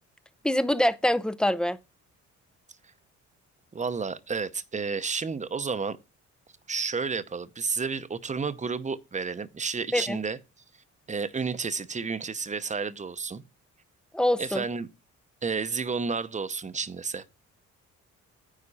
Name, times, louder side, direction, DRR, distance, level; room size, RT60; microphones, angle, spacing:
voice 1, 0.4-1.8 9.9-10.2 14.1-14.6, left 1 dB, 5° left, 0.5 m, -25 dB
voice 2, 3.7-6.0 6.7-10.4 11.1-13.4 14.4-14.9 15.4-17.3, right 5 dB, 25° right, 0.8 m, -31 dB
9.9 x 3.7 x 5.5 m
cardioid pair, 90°, 30 cm